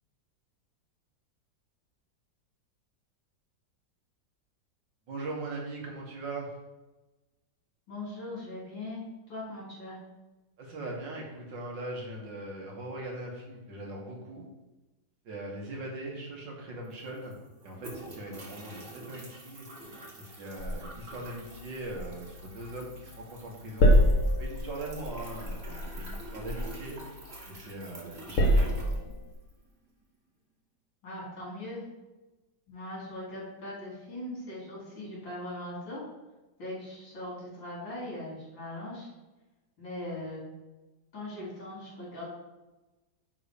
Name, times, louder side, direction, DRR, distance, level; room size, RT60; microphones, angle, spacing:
voice 1, 5.1-6.5 10.6-14.4 15.2-17.4 17.6-19.7 20.2-23.9 24.4-27.0 27.5-29.0, right 2 dB, 70° right, -2 dB, 2.4 m, -40 dB
voice 2, 7.9-9.0 9.3-10.0 31.0-31.8 32.7-36.0 36.6-39.1 39.8-40.4 41.1-42.3, left 1 dB, 80° left, -6 dB, 3.8 m, -40 dB
sound 1, 16.8-29.6, right 2 dB, 35° right, 1.8 m, -48 dB
sound 2, 20.6-23.2 23.4-27.7 28.0-29.3, equal, 50° left, 1.3 m, -28 dB
9.8 x 3.9 x 5.1 m, 1.1 s
omnidirectional pair, 2.0 m